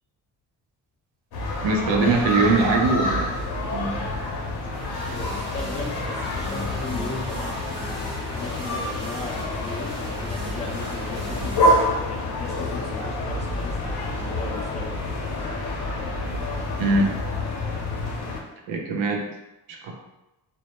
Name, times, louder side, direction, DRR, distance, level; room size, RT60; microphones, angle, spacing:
sound 1, 1.3-18.4, left 1 dB, 60° left, 0.7 m, -28 dB
voice 1, 1.6-4.0 16.8-17.2 18.7-19.3 19.7-20.0, right 3 dB, 85° right, 2 dB, 0.6 m, -22 dB
sound 2, 4.7-11.6, right 1 dB, 35° right, 0.9 m, -37 dB
voice 2, 5.1-7.6 8.3-15.0, left 3 dB, 15° left, -1 dB, 0.4 m, -37 dB
2.1 x 2.1 x 2.9 m, 0.95 s
cardioid pair, 80°, 45 cm